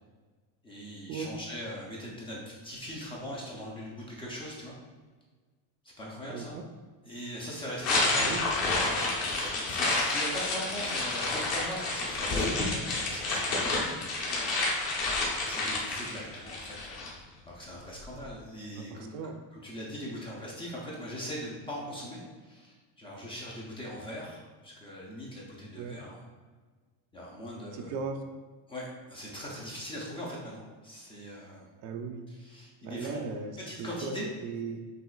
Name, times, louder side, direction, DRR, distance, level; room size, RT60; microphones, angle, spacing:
voice 1, 0.6-4.7 6.0-6.5 7.0-8.5 9.2-13.9 15.0-17.1 17.5-19.1 19.5-26.2 27.1-28.0 28.7-31.7 32.3-33.2 33.6-34.3, equal, 15° left, -4 dB, 0.4 m, -41 dB
voice 2, 6.3-6.6 8.1-8.5 18.8-19.3 25.8-26.0 27.7-28.2 31.8-32.3 32.8-34.2 34.4-34.8, right 5 dB, 60° right, 5 dB, 0.5 m, -37 dB
sound 1, 7.8-17.1, left 2 dB, 40° left, 1.0 m, -29 dB
6.1 x 2.9 x 2.4 m, 1.4 s
cardioid pair, 175°, 39 cm